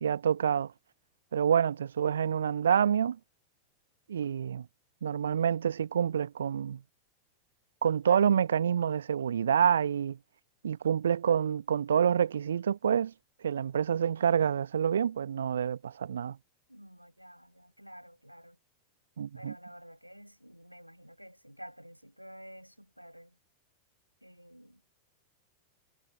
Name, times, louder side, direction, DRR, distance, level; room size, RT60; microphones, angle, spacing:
voice 1, 0.0-0.7 1.3-3.2 4.1-4.7 5.0-6.8 7.8-10.2 10.6-13.1 13.4-16.4 19.2-19.6, right 8 dB, 65° right, 0.9 m, -27 dB
voice 2, 16.7-18.6 19.3-23.4 24.2-24.8, equal, 90° right, 6.2 m, -51 dB
figure-of-eight pair, 90°, 0 cm